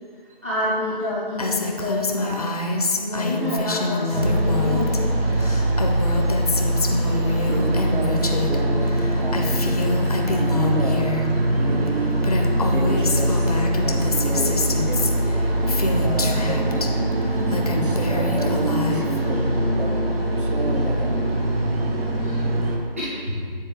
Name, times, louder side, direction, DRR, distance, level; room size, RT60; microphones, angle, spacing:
voice 1, 0.4-2.4 3.0-5.0 5.4-5.6 6.9-7.4 22.2-22.4 23.0-23.5, left 1 dB, 15° right, -10 dB, 0.5 m, -28 dB
Female speech woman speaking, 1.4-5.0 5.3-8.6 8.8-11.2 11.9-12.0 12.2-16.9 17.3-19.2, left 3 dB, 40° left, 0.5 m, -26 dB
sound 1, 4.1-22.8, right 1 dB, 80° right, 1.1 m, -22 dB
voice 2, 7.2-9.9 10.3-11.2 11.6-12.1 12.7-15.1 15.9-16.9 17.4-21.3, right 3 dB, 60° right, 1 dB, 1.0 m, -31 dB
9.1 x 3.9 x 3.4 m, 2.1 s
figure-of-eight pair, 160°, 30 cm